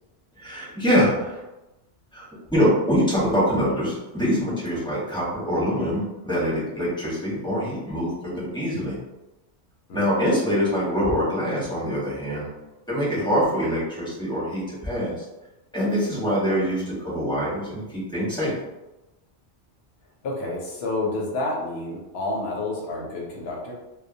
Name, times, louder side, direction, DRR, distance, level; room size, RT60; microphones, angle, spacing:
voice 1, 0.4-1.4 2.1-9.0 9.9-12.5 12.9-15.2 15.7-18.5, equal, 5° left, -9 dB, 0.9 m, -24 dB
voice 2, 9.9-10.2 16.8-16.9 20.2-23.7, left 2 dB, 70° left, -2 dB, 0.9 m, -29 dB
2.2 x 2.1 x 2.6 m, 0.99 s
omnidirectional pair, 1.2 m